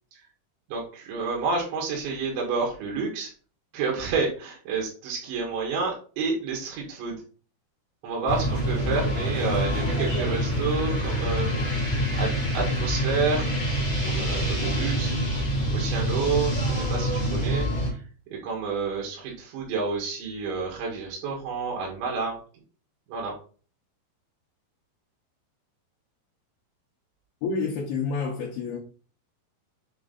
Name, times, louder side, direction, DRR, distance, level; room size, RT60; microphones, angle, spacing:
voice 1, 0.7-3.3 3.7-7.2 8.0-11.5 11.8-13.5 14.1-15.1 15.7-18.0 18.4-22.4 23.1-23.3, right 4 dB, 85° right, 4.1 m, -29 dB
sound 1, 8.3-17.9, equal, 20° left, 1.1 m, -26 dB
voice 2, 27.4-28.8, left 4 dB, 70° left, 2.7 m, -28 dB
8.5 x 3.9 x 4.0 m
omnidirectional pair, 5.1 m